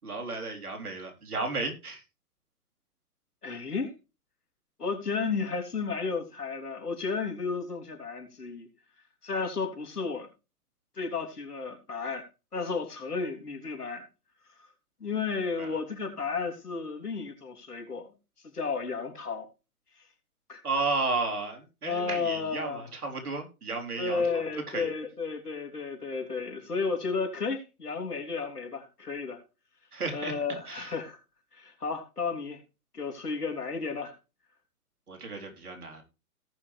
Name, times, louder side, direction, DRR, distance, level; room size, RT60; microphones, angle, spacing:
voice 1, 0.0-2.0 15.6-15.8 20.6-24.9 29.9-30.3 30.7-31.0 35.1-36.0, right 3 dB, 75° right, 3.9 m, -33 dB
voice 2, 3.4-3.9 4.8-8.7 9.2-10.3 11.0-12.3 12.5-14.1 14.6-14.7 15.0-18.0 18.4-19.5 20.5-20.6 21.8-22.9 24.0-29.4 30.1-31.2 31.5-32.6 32.9-34.1, left 4 dB, 85° left, 3.3 m, -33 dB
18.0 x 6.1 x 3.3 m
hypercardioid pair, 130°, 45 cm